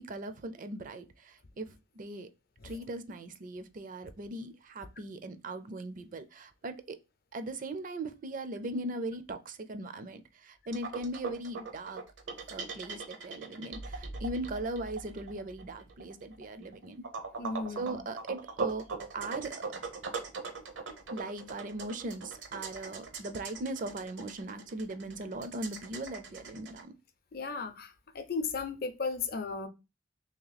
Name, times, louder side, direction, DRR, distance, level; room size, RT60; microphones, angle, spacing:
voice 1, 0.0-2.3 2.6-7.0 7.3-12.0 12.5-17.0 17.7-18.9 19.1-19.7 21.1-26.9, right 2 dB, 45° right, 0.4 m, -39 dB
sound 1, 10.7-26.8, right 4 dB, 75° right, 0.8 m, -40 dB
voice 2, 17.4-18.0 27.3-29.7, left 4 dB, 50° left, 0.6 m, -35 dB
3.0 x 2.8 x 3.9 m
head